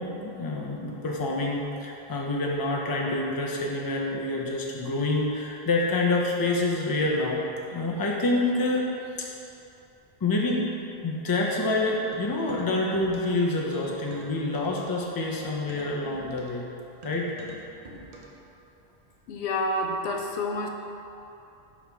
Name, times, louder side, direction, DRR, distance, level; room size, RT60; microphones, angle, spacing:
voice 1, 0.0-7.4 7.7-8.9 9.2-9.3 10.2-10.6 11.0-16.7 17.0-17.3, left 2 dB, 25° left, -2 dB, 0.5 m, -27 dB
sound 1, 12.1-13.4 13.7-18.5, right 2 dB, 45° right, 0.7 m, -46 dB
voice 2, 19.3-20.7, left 1 dB, 90° left, 3 dB, 0.9 m, -28 dB
5.6 x 4.9 x 3.4 m, 2.8 s
omnidirectional pair, 1.1 m